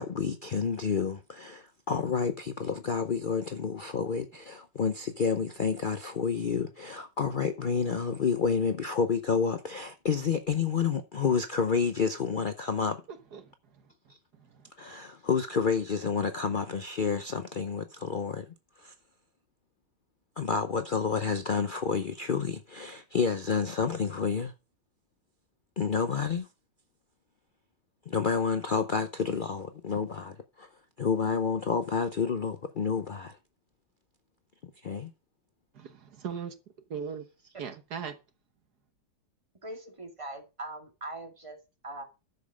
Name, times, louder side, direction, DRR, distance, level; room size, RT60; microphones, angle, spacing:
voice 1, 0.0-13.0 14.8-18.9 20.4-24.5 25.8-26.5 28.1-30.7 31.0-33.4 34.8-35.1, left 5 dB, 75° left, 0.4 m, -29 dB
voice 2, 13.1-13.9 14.3-14.7 35.7-36.5 36.9-37.3 37.6-38.2, right 7 dB, 65° right, 1.7 m, -39 dB
voice 3, 39.6-41.6 41.8-42.0, right 2 dB, 15° right, 2.2 m, -41 dB
11.0 x 7.4 x 4.9 m
omnidirectional pair, 1.9 m